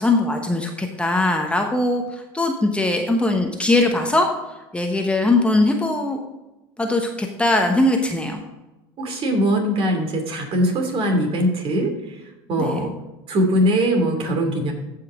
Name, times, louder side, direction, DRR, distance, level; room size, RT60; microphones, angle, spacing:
voice 1, 0.0-6.2 6.8-8.4 12.6-12.8, left 2 dB, 10° left, 3 dB, 1.1 m, -21 dB
voice 2, 9.0-12.2 12.5-12.9 13.3-14.7, equal, 45° right, 3 dB, 2.7 m, -21 dB
15.0 x 5.7 x 3.7 m, 1.0 s
hypercardioid pair, 90°, 13 cm